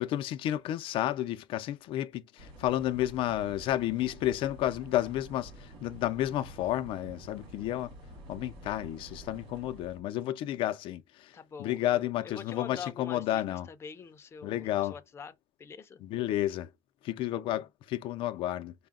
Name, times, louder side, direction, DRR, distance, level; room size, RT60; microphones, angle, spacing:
voice 1, 0.0-7.9 8.3-11.3 11.6-13.7 14.4-14.9 16.0-16.7 17.0-18.7, left 13 dB, 75° left, 0.5 m, -31 dB
sound 1, 2.4-10.0, right 1 dB, 75° right, 2.1 m, -49 dB
voice 2, 11.3-15.3 15.6-16.0 17.3-17.7, left 6 dB, 30° left, 0.6 m, -45 dB
4.8 x 2.2 x 3.6 m
cardioid pair, 160°, 9 cm